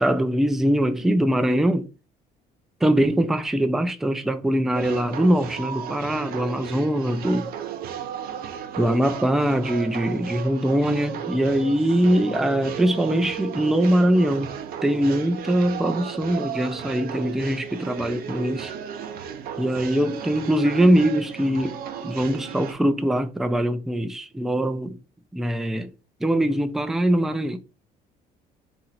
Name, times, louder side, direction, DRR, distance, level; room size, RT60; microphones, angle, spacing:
voice 1, 0.0-1.9 2.8-7.5 8.8-14.5 14.8-18.7 19.6-25.0 25.3-25.9 26.2-27.6, right 1 dB, ahead, 0.3 m, -22 dB
sound 1, 4.7-22.7, right 9 dB, 65° right, 0.5 m, -35 dB
2.8 x 2.5 x 4.2 m
cardioid pair, 110°, 17 cm